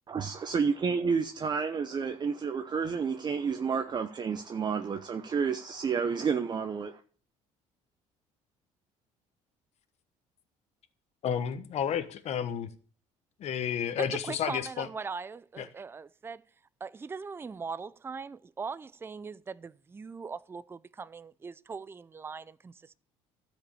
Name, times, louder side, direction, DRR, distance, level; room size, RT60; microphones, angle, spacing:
voice 1, 0.1-7.0, right 6 dB, 35° right, 0.8 m, -30 dB
voice 2, 11.2-12.7 13.4-14.9 15.6-15.7, left 8 dB, 55° left, 1.2 m, -31 dB
voice 3, 14.2-16.4 16.8-23.0, right 5 dB, 15° right, 0.5 m, -40 dB
13.0 x 5.2 x 8.5 m
cardioid pair, 105°, 13 cm